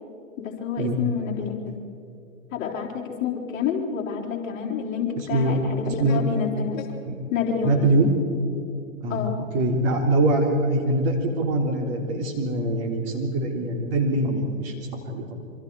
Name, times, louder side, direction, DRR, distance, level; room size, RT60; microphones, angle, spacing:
voice 1, 0.4-1.8 2.5-6.9 7.3-7.8 9.1-9.4, left 7 dB, 25° left, -6 dB, 4.2 m, -28 dB
voice 2, 5.2-5.6 5.9-6.2 7.1-7.2 7.6-8.1 9.0-9.2 9.5-15.3, right 2 dB, 40° right, 1 dB, 3.7 m, -23 dB
27.5 x 24.5 x 4.9 m, 2.7 s
hypercardioid pair, 125°, 41 cm